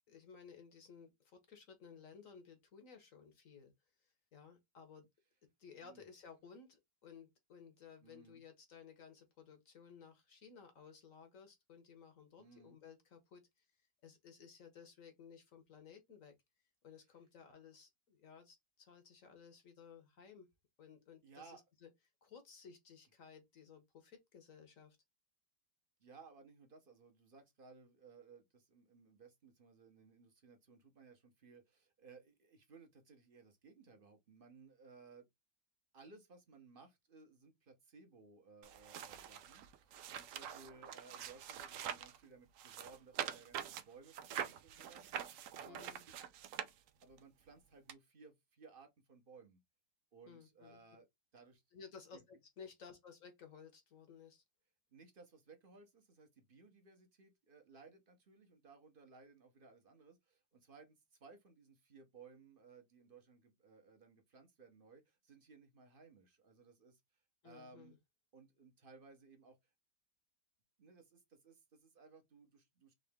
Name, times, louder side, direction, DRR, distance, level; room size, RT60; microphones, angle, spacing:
voice 1, 0.1-3.7 4.3-5.1 5.6-13.7 14.0-16.3 16.8-20.5 20.8-21.9 22.2-25.0 45.7-46.0 50.3-50.8 51.7-54.4 67.4-68.0, left 6 dB, 55° left, 1.2 m, -57 dB
voice 2, 8.0-8.4 12.4-12.8 21.2-21.6 26.0-35.3 35.9-45.9 47.0-49.6 50.1-51.1 51.3-51.6 52.1-52.2 54.9-68.0 68.3-69.7 70.8-72.9, right 4 dB, 40° right, 0.8 m, -61 dB
sound 1, 38.6-42.2 42.6-47.2 47.9-48.0, right 9 dB, 75° right, 0.7 m, -45 dB
3.9 x 3.1 x 3.5 m
omnidirectional pair, 1.9 m